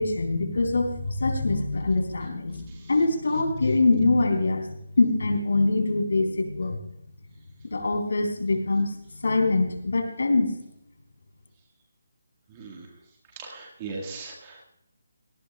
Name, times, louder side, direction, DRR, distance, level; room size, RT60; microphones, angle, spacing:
voice 1, 0.0-4.6 5.0-6.8 7.7-8.9 9.2-10.5, left 3 dB, 70° left, 4 dB, 3.8 m, -24 dB
voice 2, 12.5-13.0 13.3-14.6, right 4 dB, 15° right, 0 dB, 1.7 m, -39 dB
18.0 x 16.5 x 2.3 m, 0.77 s
hypercardioid pair, 175°, 0 cm